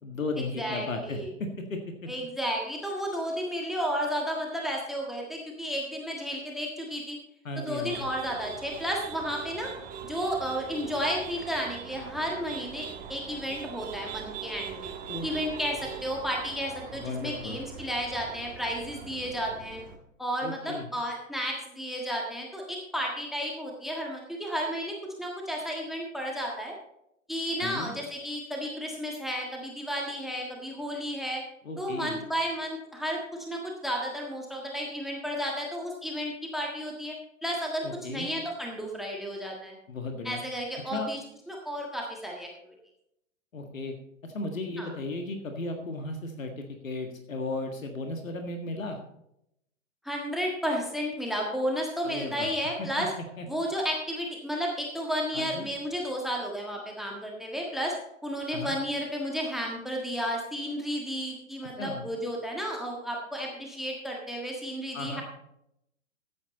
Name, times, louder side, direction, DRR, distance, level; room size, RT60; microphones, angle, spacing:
voice 1, 0.0-2.1 7.4-8.1 15.1-15.3 16.9-17.6 20.4-20.9 27.6-27.9 31.6-32.2 37.8-38.3 39.9-40.4 40.9-41.1 43.5-44.0 44.2-49.0 52.0-52.5 52.8-53.5 55.3-55.7 58.5-58.8 61.6-62.1 64.9-65.2, left 2 dB, 80° left, 4 dB, 1.9 m, -35 dB
voice 2, 0.6-1.3 2.1-7.2 7.6-9.7 10.1-14.9 15.2-19.8 20.2-26.7 27.3-31.4 31.8-37.2 37.4-39.7 40.2-41.2 41.5-42.5 44.8-44.9 50.0-53.1 53.5-57.9 58.2-65.2, equal, ahead, 0 dB, 1.6 m, -32 dB
sound 1, 7.9-20.0, right 7 dB, 20° right, 1.6 m, -42 dB
13.5 x 8.7 x 4.2 m, 0.79 s
figure-of-eight pair, 115°, 40 cm